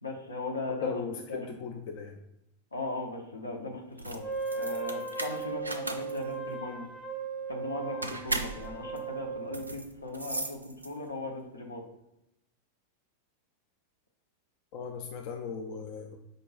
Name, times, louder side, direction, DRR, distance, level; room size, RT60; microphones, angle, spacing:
voice 1, 0.0-1.0 1.3-1.5 2.7-6.9 7.5-11.8, left 2 dB, 80° left, 1 dB, 0.7 m, -38 dB
voice 2, 0.8-2.2 14.7-16.2, left 5 dB, 45° left, 4 dB, 0.3 m, -38 dB
sound 1, 3.9-11.2, right 2 dB, 80° right, 0.3 m, -38 dB
Wind instrument woodwind instrument, 4.2-9.8, right 5 dB, 5° right, 0.5 m, -37 dB
5.1 x 2.3 x 3.8 m, 0.85 s
figure-of-eight pair, 90°, 0 cm